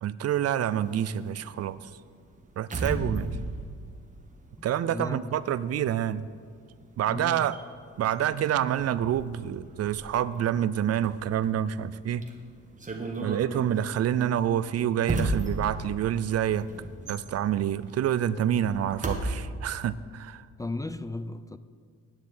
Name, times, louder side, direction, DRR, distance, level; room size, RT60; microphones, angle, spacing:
voice 1, 0.0-1.8 2.6-3.4 4.6-6.3 7.0-7.6 8.0-12.2 13.2-16.7 17.1-20.5, right 10 dB, 55° right, 0.5 m, -27 dB
sound 1, 0.7-5.1 5.4-19.3, right 2 dB, 25° right, 1.6 m, -36 dB
voice 2, 4.6-5.3 7.1-7.5 20.6-21.6, left 2 dB, 10° left, 0.4 m, -36 dB
9.8 x 7.3 x 8.8 m
cardioid pair, 90°, 30 cm